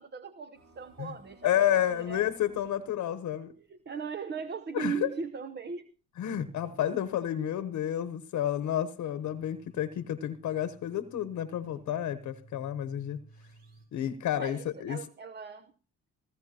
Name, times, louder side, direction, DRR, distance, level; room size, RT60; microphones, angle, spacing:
voice 1, 0.0-2.3 3.6-5.9 14.4-15.7, right 5 dB, 35° right, 0.9 m, -38 dB
sound 1, 0.5-3.0 3.8-3.9 4.3-4.4 5.3-5.4 6.2-7.3 8.8-13.9, right 3 dB, 60° right, 6.2 m, -56 dB
voice 2, 1.4-3.5 4.7-5.1 6.2-13.2 13.9-15.0, left 11 dB, 75° left, 1.0 m, -30 dB
17.0 x 15.0 x 2.9 m
cardioid pair, 90°, 30 cm